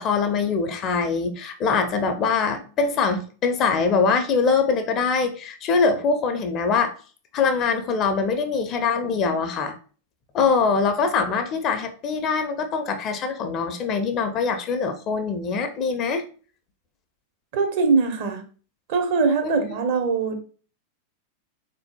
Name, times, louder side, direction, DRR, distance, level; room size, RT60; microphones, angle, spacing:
voice 1, 0.0-6.9 7.3-9.7 10.3-16.2 19.4-19.5, left 5 dB, 35° left, 8 dB, 0.5 m, -23 dB
voice 2, 17.5-18.4 18.9-20.4, right 4 dB, 50° right, 5 dB, 0.6 m, -22 dB
3.6 x 2.6 x 2.2 m, 0.39 s
figure-of-eight pair, 90°, 0 cm